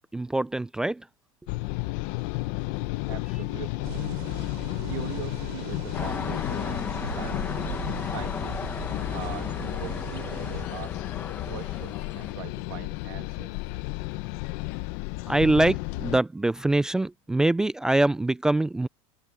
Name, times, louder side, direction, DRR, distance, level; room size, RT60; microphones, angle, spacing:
voice 1, 0.1-1.1 15.3-18.9, right 2 dB, 5° right, 0.3 m, -24 dB
sound 1, 1.5-16.2, left 21 dB, 50° left, 0.8 m, -33 dB
voice 2, 3.1-3.9 4.8-6.8 7.1-7.6 8.1-8.8 9.1-11.0 11.4-13.7, right 17 dB, 90° right, 1.7 m, -41 dB
sound 2, 3.8-10.7, right 24 dB, 70° right, 3.5 m, -40 dB
sound 3, 5.9-12.3, left 6 dB, 15° left, 0.8 m, -35 dB
supercardioid pair, 170°, 13 cm